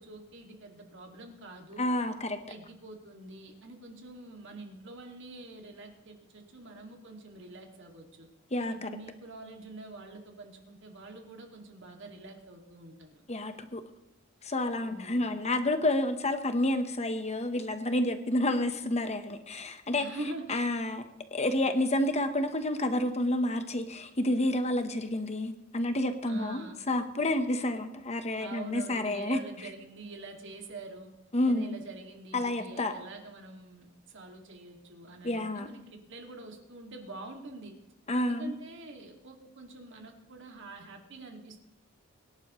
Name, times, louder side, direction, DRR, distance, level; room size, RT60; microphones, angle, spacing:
voice 1, 0.0-1.9 2.5-8.3 8.7-13.2 14.7-15.2 20.0-20.6 26.3-26.8 28.4-31.1 31.4-37.8 38.2-41.6, right 2 dB, 60° right, 2 dB, 2.3 m, -45 dB
voice 2, 1.8-2.4 8.5-8.9 13.3-13.8 14.4-20.1 20.5-21.0 21.3-29.4 31.3-31.8 32.3-32.9 35.2-35.7 38.1-38.6, left 1 dB, 30° left, 8 dB, 1.1 m, -29 dB
22.5 x 11.0 x 3.2 m, 0.83 s
head